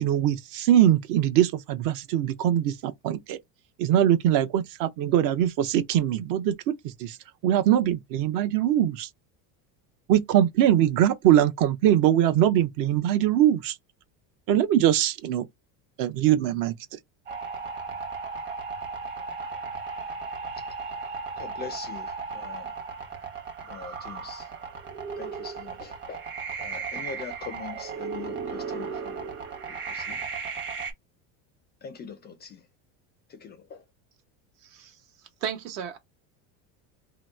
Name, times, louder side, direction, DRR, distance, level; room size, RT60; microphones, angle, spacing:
voice 1, 0.0-3.4 3.8-7.2 7.4-9.1 10.1-13.8 14.5-15.5 16.0-16.7, right 11 dB, 55° right, 0.6 m, -22 dB
sound 1, 17.3-30.9, right 5 dB, 30° right, 0.9 m, -35 dB
voice 2, 21.4-22.7 23.6-24.5 25.2-26.3 26.6-29.3 29.7-30.2 31.8-32.6 33.3-33.8, left 6 dB, 25° left, 0.3 m, -42 dB
voice 3, 34.6-35.0 35.4-36.0, right 8 dB, 70° right, 1.2 m, -34 dB
2.9 x 2.1 x 3.4 m
supercardioid pair, 130°, 42 cm